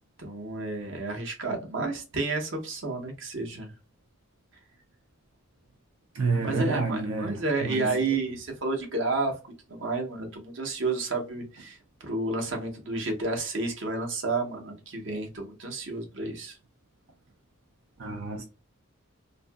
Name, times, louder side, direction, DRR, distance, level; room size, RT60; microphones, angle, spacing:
voice 1, 0.2-3.7 6.3-9.3 9.7-16.6, right 3 dB, 65° right, 0.9 m, -31 dB
voice 2, 6.1-8.2 18.0-18.4, right 3 dB, 85° right, 0.5 m, -29 dB
2.6 x 2.5 x 2.2 m
head